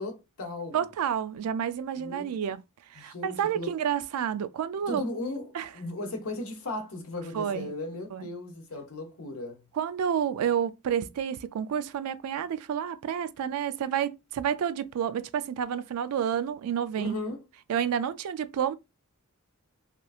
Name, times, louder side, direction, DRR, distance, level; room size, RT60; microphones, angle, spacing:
voice 1, 0.0-0.9 2.0-2.3 3.0-3.7 4.8-9.6 17.0-17.4, left 2 dB, 70° left, 0.8 m, -36 dB
voice 2, 0.7-2.6 2.9-5.0 5.5-5.7 7.3-7.7 8.1-8.3 9.8-17.2 17.7-18.7, right 8 dB, 85° right, 0.3 m, -30 dB
2.8 x 2.5 x 2.3 m
head